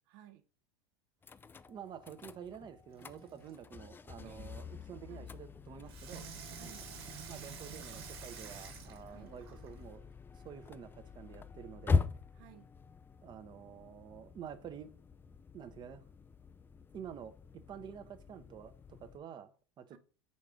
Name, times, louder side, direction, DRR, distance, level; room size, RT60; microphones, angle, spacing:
voice 1, 0.1-0.4 4.2-4.5 5.1-5.3 6.5-6.9 9.0-9.4 12.3-12.7 19.9-20.0, right 12 dB, 65° right, 0.9 m, -57 dB
sound 1, 1.2-19.2, left 4 dB, 15° left, 0.4 m, -42 dB
voice 2, 1.7-6.2 7.3-10.0 10.3-12.1 13.2-14.9 15.5-16.0 16.9-17.3 17.7-19.5 19.8-20.0, right 8 dB, 35° right, 0.9 m, -49 dB
Water tap faucet / Sink (filling or washing), 2.9-3.6 5.9-9.8 10.5-10.6, right 7 dB, 80° right, 1.5 m, -49 dB
4.9 x 4.2 x 4.9 m
hypercardioid pair, 100°, 13 cm